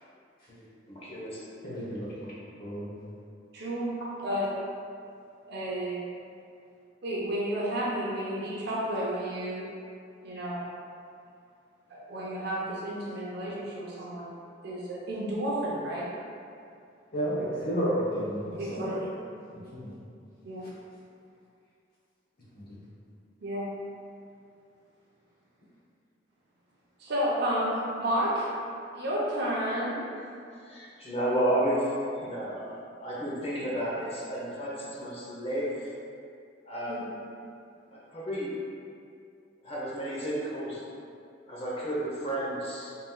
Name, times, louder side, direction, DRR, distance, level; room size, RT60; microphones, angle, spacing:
voice 1, 0.5-1.4 30.7-35.9 36.7-37.1 37.9-38.5 39.6-40.8 41.4-43.0, right 1 dB, 35° left, -7 dB, 0.8 m, -32 dB
voice 2, 1.6-2.3 2.6-2.9 17.1-18.9 19.5-19.9 22.5-22.6, equal, 55° left, -8 dB, 0.9 m, -31 dB
voice 3, 3.5-4.5 5.5-6.0 7.0-9.7 10.2-10.6 11.9-14.3 14.6-16.1 18.6-19.0 20.4-20.7 23.4-23.7 27.0-28.5 29.0-30.0 36.9-37.0, equal, 60° right, -6 dB, 0.6 m, -31 dB
3.7 x 2.8 x 2.3 m, 2.4 s
head